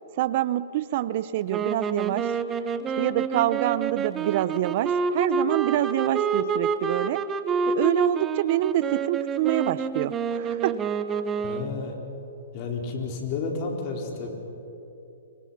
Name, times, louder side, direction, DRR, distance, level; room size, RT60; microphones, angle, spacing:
voice 1, 0.1-2.4 3.0-7.2 7.7-10.8, right 13 dB, 45° right, 16 dB, 0.6 m, -26 dB
sound 1, 1.5-11.9, right 5 dB, 20° right, 1.0 m, -28 dB
voice 2, 11.4-12.0 12.5-14.3, left 4 dB, 40° left, 1 dB, 4.6 m, -31 dB
28.5 x 24.5 x 5.9 m, 2.9 s
hypercardioid pair, 145°, 0 cm